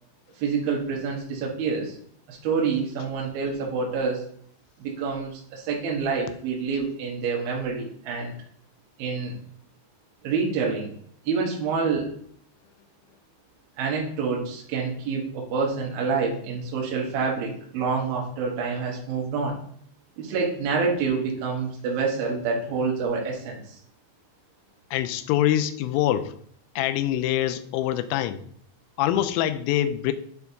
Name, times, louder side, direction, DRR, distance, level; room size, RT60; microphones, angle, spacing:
voice 1, 0.4-2.0 2.3-4.2 4.8-8.3 9.0-9.4 10.2-10.9 11.3-12.1 13.8-19.6 20.2-23.8, right 5 dB, 75° right, -2 dB, 2.2 m, -27 dB
voice 2, 24.9-26.3 26.8-28.4 29.0-30.1, left 12 dB, 85° left, 12 dB, 3.2 m, -24 dB
10.5 x 4.6 x 2.7 m, 0.62 s
omnidirectional pair, 5.8 m